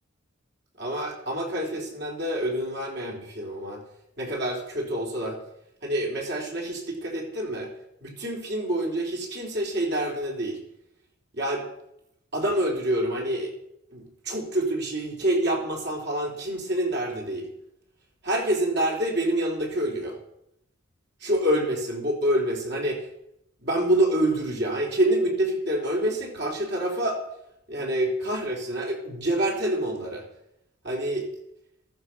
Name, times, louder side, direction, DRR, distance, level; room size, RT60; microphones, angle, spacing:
voice 1, 0.8-3.8 4.2-5.4 5.8-7.7 8.0-10.6 11.3-11.6 12.3-13.5 13.9-17.5 18.2-20.2 21.2-23.1 23.6-27.2 27.7-30.3 30.8-31.3, right 1 dB, 50° right, 0 dB, 3.9 m, -27 dB
14.5 x 14.0 x 5.7 m, 0.80 s
head